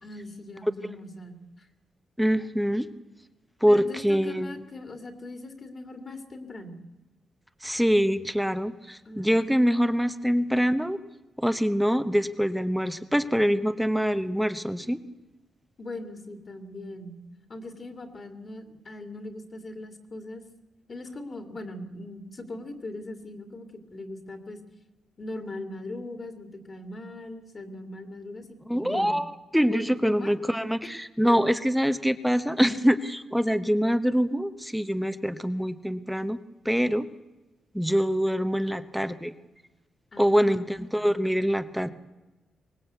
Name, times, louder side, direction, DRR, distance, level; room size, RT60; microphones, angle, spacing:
voice 1, 0.0-1.7 3.7-6.8 9.0-9.4 15.8-17.2 17.5-20.4 20.9-24.6 25.2-29.2 29.7-30.3 31.3-31.4 40.1-40.7 40.9-41.1, left 2 dB, 35° left, 6 dB, 2.6 m, -40 dB
voice 2, 2.2-2.9 3.6-4.5 7.6-11.0 11.4-15.0 28.7-36.4 36.6-37.1 37.7-39.3 40.2-41.9, equal, ahead, 11 dB, 1.0 m, -24 dB
23.5 x 19.5 x 8.2 m, 1.1 s
wide cardioid pair, 135°, 0 cm